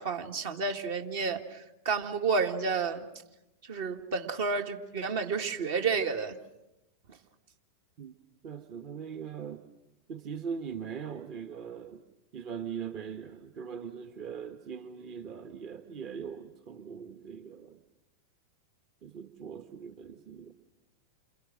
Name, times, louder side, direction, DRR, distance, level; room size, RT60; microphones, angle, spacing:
voice 1, 0.0-3.1 3.7-6.4, right 5 dB, 55° right, 5 dB, 2.1 m, -31 dB
voice 2, 8.4-9.7 10.1-12.0 12.3-17.8 19.0-20.5, right 7 dB, 40° right, 8 dB, 1.3 m, -41 dB
29.0 x 27.5 x 6.4 m, 0.93 s
figure-of-eight pair, 90°, 0 cm